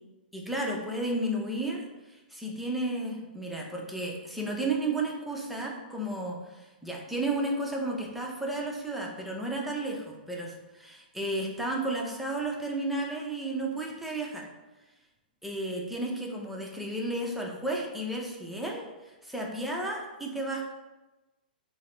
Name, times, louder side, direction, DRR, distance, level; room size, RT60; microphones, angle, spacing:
voice 1, 0.3-1.8 2.1-14.4 15.4-20.6, right 2 dB, ahead, -2 dB, 0.6 m, -33 dB
4.0 x 2.0 x 3.7 m, 1.1 s
hypercardioid pair, 130°, 5 cm